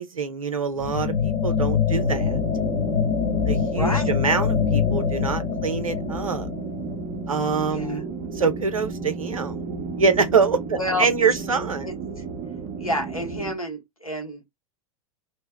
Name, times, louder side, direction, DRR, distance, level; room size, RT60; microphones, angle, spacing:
voice 1, 0.0-2.4 3.4-6.5 7.3-8.1 8.3-9.6 10.0-11.9, right 5 dB, 75° right, 0.7 m, -25 dB
sound 1, 0.8-7.5, left 7 dB, 40° left, 0.8 m, -25 dB
sound 2, 1.9-13.5, right 4 dB, 25° right, 0.8 m, -33 dB
voice 2, 3.7-4.2 7.7-8.0 10.7-11.1 11.5-11.9 12.8-14.4, left 1 dB, 85° left, 1.2 m, -29 dB
2.7 x 2.1 x 3.3 m
figure-of-eight pair, 95°, 18 cm